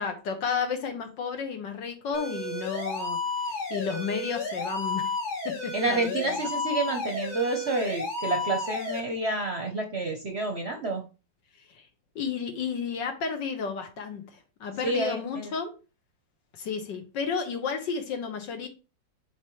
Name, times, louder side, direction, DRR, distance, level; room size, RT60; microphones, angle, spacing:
voice 1, 0.0-5.2 5.5-6.5 11.7-11.9 12.2-15.7 16.5-18.7, left 6 dB, 70° left, 1.8 m, -32 dB
sound 1, 2.1-9.0, left 3 dB, 85° left, 3.6 m, -32 dB
voice 2, 5.7-11.0 14.8-15.5, right 2 dB, 45° right, 0.9 m, -29 dB
7.2 x 5.0 x 3.1 m
omnidirectional pair, 2.1 m